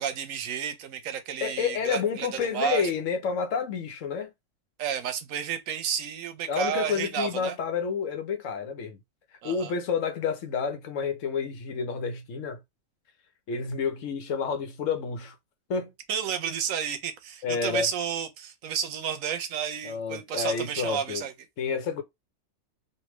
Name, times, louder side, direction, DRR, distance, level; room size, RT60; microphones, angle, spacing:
voice 1, 0.0-2.3 2.5-2.9 4.8-7.5 9.4-9.7 16.1-21.3, right 8 dB, 80° right, 1.1 m, -31 dB
voice 2, 1.4-4.3 6.5-9.0 9.4-12.6 13.5-15.3 15.7-15.9 17.4-17.9 19.8-21.3 21.6-22.0, left 6 dB, 75° left, 1.1 m, -29 dB
3.3 x 2.6 x 3.0 m
omnidirectional pair, 1.4 m